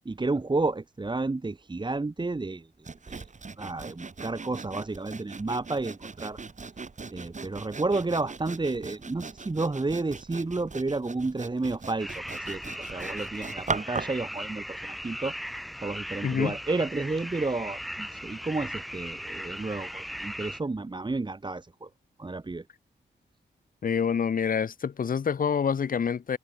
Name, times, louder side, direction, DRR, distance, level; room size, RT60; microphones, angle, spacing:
voice 1, 0.0-2.7 3.1-3.2 3.6-6.4 7.1-15.3 15.8-21.9 22.2-22.6, right 3 dB, 25° right, 1.6 m, -31 dB
Sawing, 2.8-14.2, right 4 dB, 40° right, 5.4 m, -39 dB
sound 1, 12.0-20.6, equal, ahead, 1.7 m, -38 dB
voice 2, 16.2-16.5 23.8-26.4, left 7 dB, 45° left, 0.7 m, -27 dB
wide cardioid pair, 120°, 20 cm